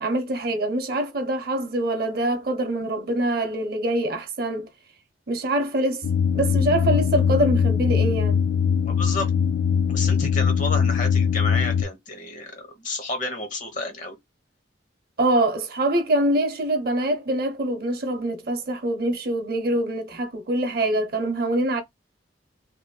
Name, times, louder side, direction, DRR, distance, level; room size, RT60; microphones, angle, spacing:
voice 1, 0.0-4.7 5.3-6.0 6.3-8.4 15.2-21.8, right 1 dB, 55° right, 0.6 m, -24 dB
sound 1, 6.0-11.8, left 7 dB, 70° left, 0.4 m, -21 dB
voice 2, 8.8-9.3 9.9-14.1, left 2 dB, 40° left, 1.0 m, -31 dB
2.8 x 2.6 x 2.2 m
head